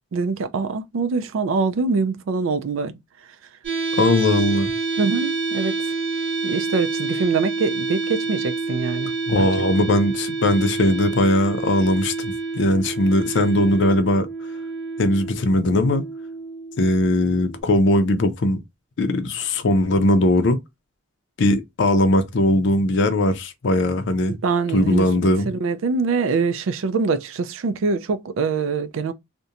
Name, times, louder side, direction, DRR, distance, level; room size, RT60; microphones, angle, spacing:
voice 1, 0.1-2.9 5.0-5.8 6.4-9.5 24.3-29.1, right 4 dB, 75° right, 0.4 m, -24 dB
sound 1, 3.6-17.6, right 4 dB, 60° right, 1.5 m, -28 dB
voice 2, 4.0-4.7 9.3-14.3 15.0-16.1 16.8-18.6 19.0-20.6 21.4-24.3 24.7-25.5, left 1 dB, 60° left, 0.4 m, -19 dB
2.8 x 2.1 x 2.4 m
head